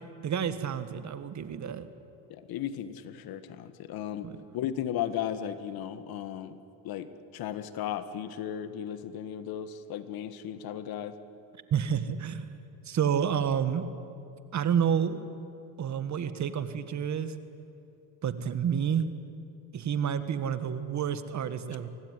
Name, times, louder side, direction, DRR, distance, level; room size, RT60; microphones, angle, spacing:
voice 1, 0.2-1.9 4.2-4.4 11.7-12.4 12.8-13.9 14.5-15.3 15.8-17.3 18.2-19.1 19.7-21.9, right 8 dB, 45° right, 12 dB, 1.8 m, -29 dB
voice 2, 2.3-4.3 4.5-6.6 6.8-11.1, left 10 dB, 60° left, 12 dB, 1.8 m, -35 dB
24.0 x 19.0 x 9.8 m, 2.7 s
supercardioid pair, 95°, 40 cm